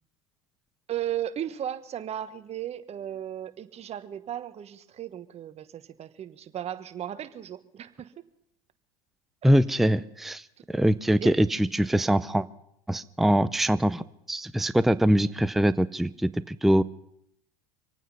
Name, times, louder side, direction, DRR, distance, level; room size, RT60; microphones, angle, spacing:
voice 1, 0.9-8.1 11.2-11.3, right 11 dB, 35° right, 12 dB, 1.2 m, -35 dB
voice 2, 9.4-12.5 12.9-16.8, right 1 dB, ahead, 14 dB, 0.5 m, -23 dB
26.0 x 9.2 x 5.6 m, 0.77 s
hypercardioid pair, 95°, 18 cm